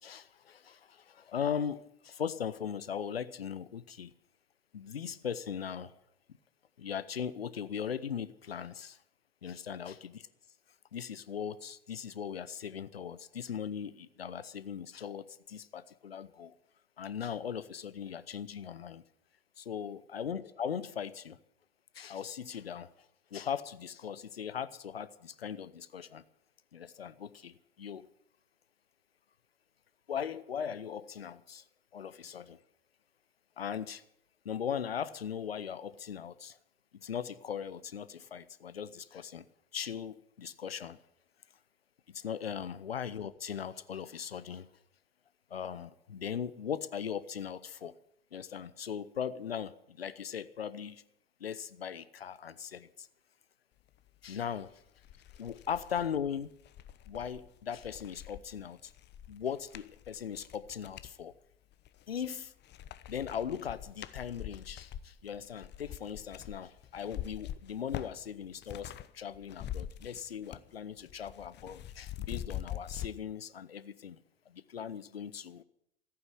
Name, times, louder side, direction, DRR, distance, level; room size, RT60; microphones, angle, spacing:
voice 1, 0.0-4.1 4.7-5.9 6.8-9.0 9.4-10.2 10.9-16.5 17.0-19.0 19.6-21.4 21.9-22.9 23.3-26.2 26.7-28.1 30.1-31.6 31.9-32.6 33.6-34.0 34.4-36.6 36.9-39.5 39.7-41.0 42.1-44.7 45.5-47.9 48.3-51.0 51.4-53.1 54.2-54.7 55.4-56.6 57.1-58.9 59.3-61.3 62.1-62.5 63.1-74.2 74.5-75.6, left 8 dB, 90° left, 17 dB, 0.8 m, -39 dB
sound 1, 55.0-61.1 61.7-62.3 62.6-69.1 69.3-70.7 71.0-73.1, left 11 dB, 35° left, 1.0 m, -44 dB
15.0 x 8.9 x 9.8 m, 0.76 s
hypercardioid pair, 80°, 29 cm